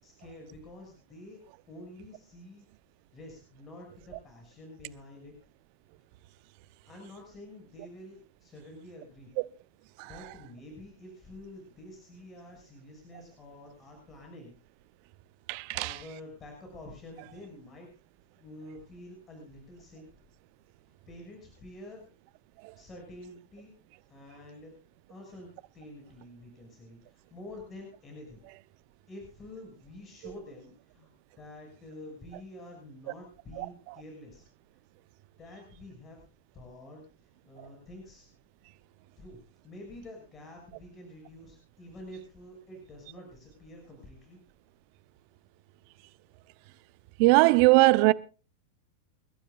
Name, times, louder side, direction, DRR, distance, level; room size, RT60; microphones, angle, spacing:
voice 1, 0.0-1.4 1.7-2.6 3.1-5.4 6.9-9.3 10.0-14.5 15.7-17.9 18.4-20.1 21.1-22.1 22.7-23.8 24.1-24.7 25.1-28.4 29.1-34.4 35.4-36.3 36.5-37.0 37.4-38.3 39.2-39.4 39.6-44.4, left 1 dB, 25° left, 6.3 m, -48 dB
voice 2, 15.5-15.9 33.6-33.7 47.2-48.1, right 23 dB, 55° right, 0.8 m, -20 dB
28.5 x 12.5 x 2.5 m
hypercardioid pair, 100°, 0 cm